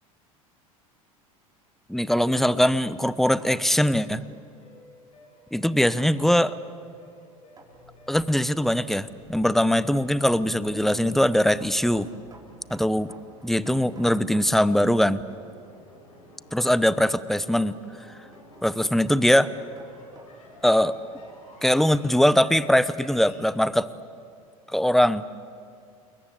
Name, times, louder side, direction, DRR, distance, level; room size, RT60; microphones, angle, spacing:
voice 1, 1.9-4.2 5.5-6.6 8.1-12.1 12.7-13.1 13.4-15.2 16.5-17.8 18.6-19.5 20.6-20.9 21.6-23.9 24.7-25.2, equal, ahead, 16 dB, 0.9 m, -21 dB
sound 1, 2.4-3.7 6.0-6.2 7.6-7.8 9.1-15.0 15.3-15.6 17.7-20.8, right 2 dB, 20° right, 4.6 m, -53 dB
sound 2, 3.7-8.3, left 1 dB, 40° left, 6.5 m, -54 dB
sound 3, 7.6-23.5, left 1 dB, 90° left, 7.5 m, -52 dB
29.5 x 21.0 x 8.3 m, 2.3 s
hypercardioid pair, 80°, 18 cm